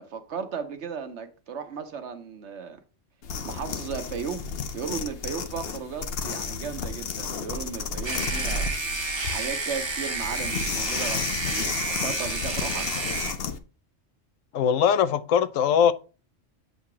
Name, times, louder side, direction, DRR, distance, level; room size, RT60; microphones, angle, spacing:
voice 1, 0.0-2.8 3.4-4.5 4.7-8.7 9.3-12.9, right 6 dB, 65° right, 1.1 m, -35 dB
sound 1, 3.2-13.6, left 5 dB, 55° left, 0.9 m, -33 dB
sound 2, 8.0-13.3, right 3 dB, 25° right, 0.8 m, -30 dB
voice 2, 14.5-15.9, left 8 dB, 85° left, 1.0 m, -21 dB
8.3 x 2.9 x 5.9 m
omnidirectional pair, 1.3 m